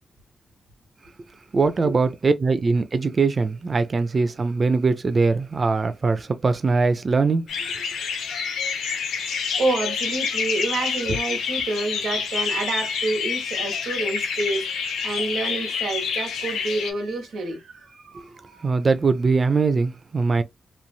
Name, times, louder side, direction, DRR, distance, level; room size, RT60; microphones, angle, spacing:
voice 1, 1.5-7.5 18.6-20.4, right 4 dB, 45° right, 0.5 m, -21 dB
sound 1, 7.5-16.9, left 6 dB, 90° left, 0.6 m, -27 dB
voice 2, 9.6-18.7, right 2 dB, 80° right, 1.3 m, -28 dB
3.1 x 2.6 x 2.3 m
supercardioid pair, 45°, 0 cm